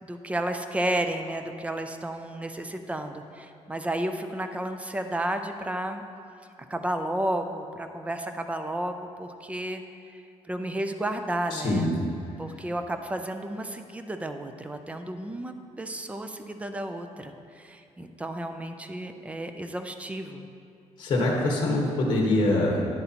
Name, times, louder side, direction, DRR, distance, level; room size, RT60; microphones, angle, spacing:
voice 1, 0.0-6.0 6.7-9.8 10.5-11.9 12.4-20.5, right 1 dB, 10° right, 7 dB, 0.4 m, -32 dB
voice 2, 11.5-11.9 21.0-22.8, left 2 dB, 40° left, -2 dB, 1.2 m, -24 dB
10.0 x 7.8 x 2.9 m, 2.5 s
cardioid pair, 160°, 12 cm